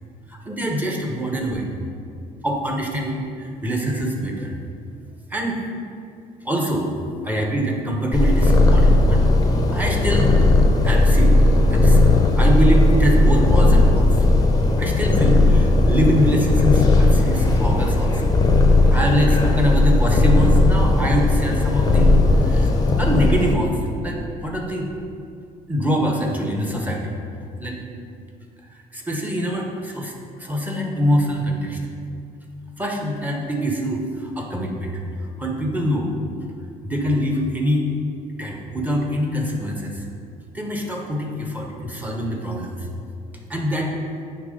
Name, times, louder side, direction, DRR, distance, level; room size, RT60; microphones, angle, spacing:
voice 1, 0.3-1.7 2.4-4.5 5.3-5.6 6.4-6.9 7.2-9.3 9.7-10.5 10.8-11.4 11.7-12.0 12.4-14.2 14.8-18.2 18.9-22.7 23.0-24.9 25.7-27.2 27.6-27.8 28.7-30.1 30.4-31.8 32.8-35.0 35.4-36.1 36.8-37.9 38.4-40.0 40.5-42.9 43.5-43.9, equal, 10° right, 0 dB, 1.2 m, -24 dB
Purr, 8.1-23.5, left 2 dB, 20° left, 0.8 m, -16 dB
9.3 x 3.3 x 5.2 m, 2.3 s
cardioid pair, 110°, 17 cm